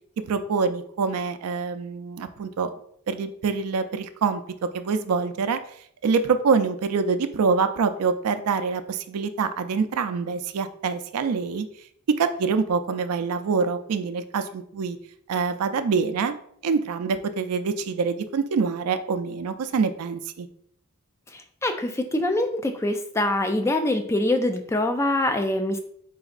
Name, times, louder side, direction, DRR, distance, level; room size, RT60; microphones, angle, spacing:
voice 1, 0.3-2.7 3.1-5.6 6.0-11.7 12.1-15.0 15.3-16.4 16.6-20.5, right 5 dB, 85° right, 9 dB, 0.4 m, -25 dB
voice 2, 21.3-25.8, left 1 dB, 10° left, 7 dB, 0.3 m, -24 dB
4.3 x 3.9 x 2.4 m, 0.66 s
head